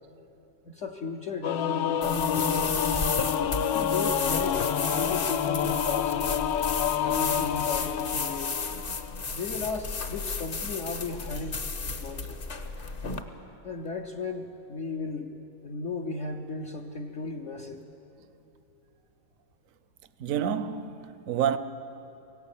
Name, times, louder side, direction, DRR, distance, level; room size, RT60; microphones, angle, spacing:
voice 1, 0.6-2.7 3.5-6.2 7.1-8.6 9.3-12.4 13.6-15.3 15.6-17.8, left 4 dB, 55° left, 1.0 m, -36 dB
Singing / Musical instrument, 1.4-9.2, left 9 dB, 85° left, 1.4 m, -28 dB
sound 1, 2.0-13.2, left 4 dB, 40° left, 1.0 m, -33 dB
voice 2, 20.2-21.6, right 8 dB, 60° right, 0.9 m, -28 dB
24.5 x 17.5 x 7.2 m
omnidirectional pair, 2.0 m